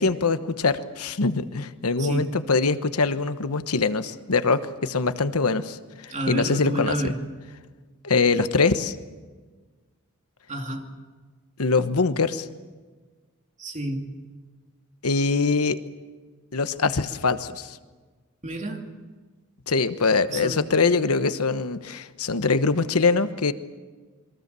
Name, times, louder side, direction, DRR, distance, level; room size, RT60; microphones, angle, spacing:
voice 1, 0.0-7.1 8.0-9.0 11.6-12.5 15.0-15.8 16.5-17.8 19.7-23.5, left 4 dB, 90° left, 11 dB, 1.1 m, -23 dB
voice 2, 2.0-2.4 6.1-7.2 10.5-10.9 13.6-14.1 18.4-18.8 20.3-20.7, right 1 dB, 35° right, 3 dB, 2.6 m, -30 dB
28.0 x 22.5 x 6.9 m, 1.4 s
head